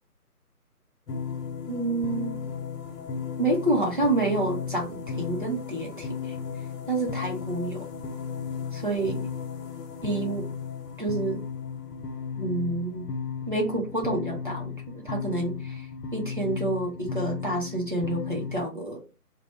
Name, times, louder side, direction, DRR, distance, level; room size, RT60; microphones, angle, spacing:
sound 1, 1.1-18.6, left 6 dB, 85° left, 0.6 m, -35 dB
voice 1, 1.7-2.4 3.4-6.3 6.9-7.9 8.7-9.3 10.0-10.5 11.0-11.4 12.4-13.1 13.5-15.9 16.1-19.0, right 2 dB, 35° right, -1 dB, 0.6 m, -28 dB
2.1 x 2.0 x 3.1 m, 0.32 s
figure-of-eight pair, 155°, 47 cm